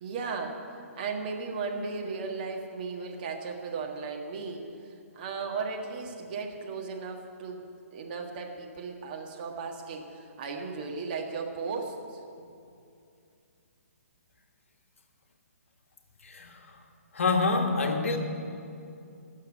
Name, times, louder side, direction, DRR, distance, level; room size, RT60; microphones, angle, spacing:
voice 1, 0.0-7.6 7.9-12.2, right 4 dB, 35° right, 1 dB, 1.6 m, -36 dB
voice 2, 16.2-16.8 17.1-18.2, left 3 dB, 60° left, 4 dB, 1.4 m, -27 dB
13.0 x 6.6 x 9.0 m, 2.5 s
figure-of-eight pair, 130°, 8 cm